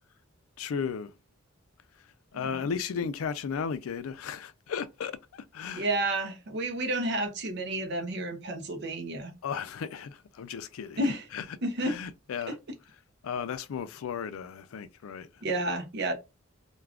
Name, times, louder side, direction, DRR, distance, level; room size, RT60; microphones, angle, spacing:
voice 1, 0.6-1.1 2.3-5.9 9.4-11.0 11.3-11.4 11.8-12.6 13.2-15.3, left 6 dB, 85° left, 0.4 m, -35 dB
voice 2, 2.4-2.7 5.7-9.3 11.0-11.3 11.6-12.0 12.5-12.6 15.4-16.1, right 1 dB, 55° right, 0.5 m, -31 dB
2.3 x 2.2 x 3.4 m
head